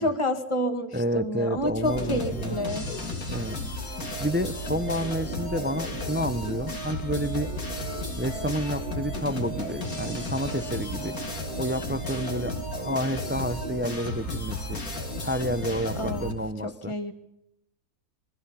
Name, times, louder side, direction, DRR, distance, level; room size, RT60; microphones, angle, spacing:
voice 1, 0.0-2.9 16.0-16.3 16.6-17.1, left 1 dB, 20° left, 7 dB, 1.9 m, -29 dB
voice 2, 0.9-2.6 3.3-3.6 4.2-7.5 8.2-11.2 11.6-14.8 15.2-16.9, equal, 15° right, 13 dB, 0.4 m, -30 dB
sound 1, 1.6-9.2, left 1 dB, 50° left, 6.0 m, -46 dB
sound 2, 1.8-16.3, left 2 dB, 70° left, 3.5 m, -34 dB
Organ, 3.9-14.6, right 9 dB, 85° right, 2.2 m, -41 dB
27.5 x 23.5 x 5.6 m, 0.82 s
omnidirectional pair, 1.6 m